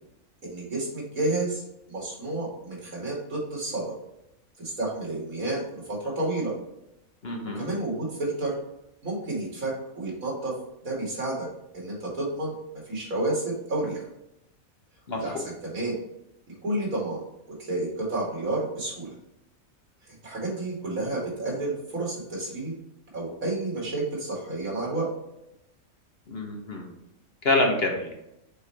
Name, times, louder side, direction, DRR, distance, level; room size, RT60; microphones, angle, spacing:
voice 1, 0.4-1.6 1.9-3.9 4.6-6.5 7.5-8.5 9.0-10.5 10.8-11.5 11.7-14.0 15.2-16.0 16.6-17.2 17.6-19.1 20.1-22.7 23.1-25.1, right 2 dB, 85° right, -3 dB, 2.8 m, -30 dB
voice 2, 7.2-7.7 15.1-15.4 26.3-26.9 27.4-28.1, left 2 dB, 50° left, 1 dB, 1.3 m, -26 dB
6.7 x 4.4 x 3.4 m, 0.84 s
omnidirectional pair, 1.4 m